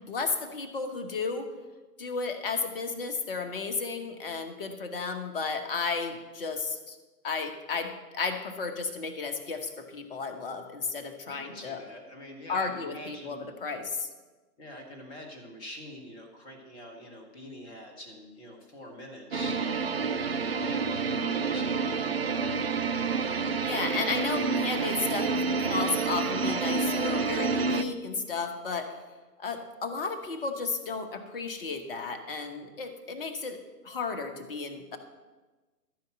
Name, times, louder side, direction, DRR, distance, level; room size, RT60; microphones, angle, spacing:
voice 1, 0.1-1.5 2.0-7.0 7.2-11.8 12.5-14.1 23.6-25.3 25.6-29.0 29.4-33.6 33.8-35.0, left 4 dB, 35° left, 6 dB, 1.1 m, -33 dB
voice 2, 11.2-13.4 14.6-19.6 20.3-22.5, left 1 dB, 10° left, 2 dB, 1.0 m, -45 dB
sound 1, 19.3-27.8, right 4 dB, 40° right, 0.4 m, -28 dB
13.5 x 5.7 x 7.3 m, 1.2 s
figure-of-eight pair, 135°, 49 cm